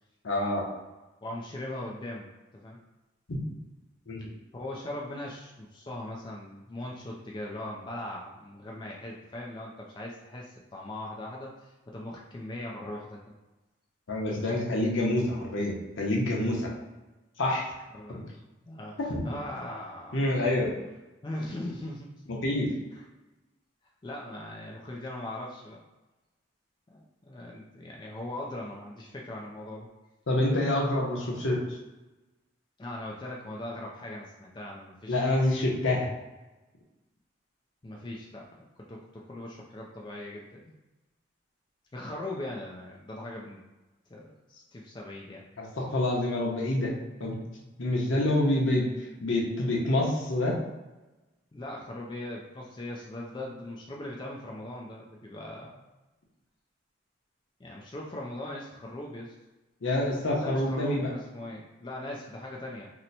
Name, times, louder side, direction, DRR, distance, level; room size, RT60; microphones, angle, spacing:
voice 1, 0.2-0.6 3.3-3.4 4.1-4.3 14.1-16.7 17.4-17.7 19.1-19.2 20.1-20.8 22.3-22.7 30.3-31.8 35.1-36.1 45.6-47.3 47.8-48.9 49.2-50.6 59.8-61.1, left 1 dB, 85° left, -2 dB, 0.8 m, -27 dB
voice 2, 1.2-2.8 4.2-4.3 4.5-13.2 17.9-18.3 18.7-20.2 21.2-22.1 22.9-23.0 24.0-25.8 26.9-29.9 32.8-35.2 37.8-40.8 41.9-43.6 44.1-45.4 51.5-55.8 57.6-59.3 60.4-62.9, left 1 dB, 25° left, -2 dB, 0.4 m, -40 dB
2.9 x 2.1 x 4.0 m, 1.1 s
head